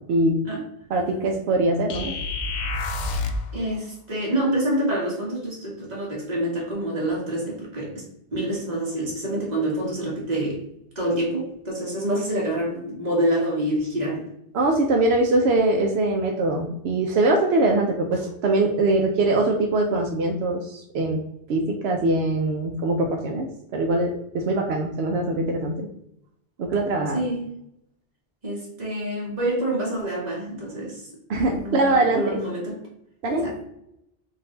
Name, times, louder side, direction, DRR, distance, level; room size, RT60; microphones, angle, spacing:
voice 1, 0.9-2.1 14.5-21.2 21.5-25.9 26.6-27.2 31.3-32.4 33.2-33.5, right 2 dB, 80° right, 2 dB, 0.9 m, -22 dB
sound 1, 1.9-3.5, left 3 dB, 55° left, 0.6 m, -28 dB
voice 2, 3.5-8.0 8.3-10.6 10.9-14.3 27.1-27.5 28.4-31.1 31.5-31.9 32.1-32.8 33.4-33.5, right 1 dB, 40° right, -4 dB, 1.6 m, -27 dB
3.9 x 2.7 x 3.8 m, 0.79 s
omnidirectional pair, 1.0 m